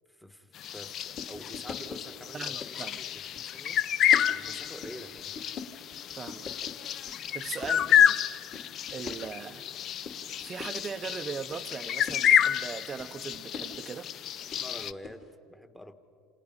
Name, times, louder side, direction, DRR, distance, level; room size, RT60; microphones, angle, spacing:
voice 1, 0.1-3.8 4.3-5.5 14.4-15.2 15.5-15.9, equal, 5° left, 1.4 m, -47 dB
sound 1, 0.5-14.9, left 10 dB, 45° left, 0.5 m, -29 dB
sound 2, 1.0-15.3, left 4 dB, 25° left, 2.3 m, -46 dB
voice 2, 2.3-3.0 6.2-6.5 7.3-8.2 8.9-9.7 10.4-14.1, right 6 dB, 25° right, 0.7 m, -39 dB
28.5 x 27.5 x 5.5 m
cardioid pair, 135°, 0 cm